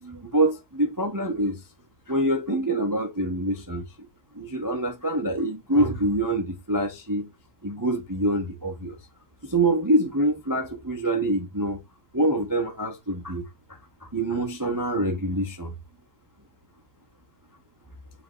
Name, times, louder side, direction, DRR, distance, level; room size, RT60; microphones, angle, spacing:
voice 1, 0.0-1.6 2.1-3.8 4.3-7.3 7.6-9.0 9.4-11.8 12.1-13.4 13.7-15.7, right 1 dB, 15° right, 0.6 m, -25 dB
7.7 x 3.3 x 4.0 m
omnidirectional pair, 2.3 m